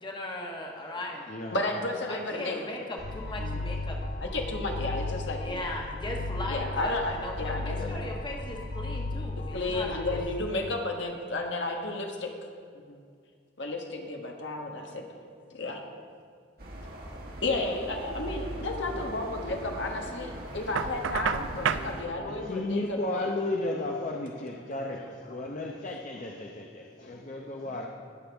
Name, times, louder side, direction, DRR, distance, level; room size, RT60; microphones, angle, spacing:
voice 1, 0.0-1.2 2.1-4.0 5.4-10.2, left 1 dB, 25° left, 0 dB, 1.2 m, -38 dB
voice 2, 0.9-1.6 2.7-2.9 3.6-3.8 5.2-5.3 7.7-8.3 22.3-27.9, left 2 dB, 40° left, 0 dB, 0.7 m, -35 dB
voice 3, 1.5-2.6 3.4-3.6 4.2-5.6 6.5-8.0 9.5-12.3 12.9-13.0 13.6-15.1 15.5-15.8 17.4-23.3, left 2 dB, 70° left, 2 dB, 1.2 m, -32 dB
sound 1, 3.0-10.2, left 2 dB, 90° left, 1.0 m, -35 dB
sound 2, 16.6-22.0, right 1 dB, 55° right, 1.6 m, -40 dB
Knock, 20.8-21.9, right 7 dB, 85° right, 0.4 m, -29 dB
20.5 x 6.9 x 3.5 m, 2.2 s
head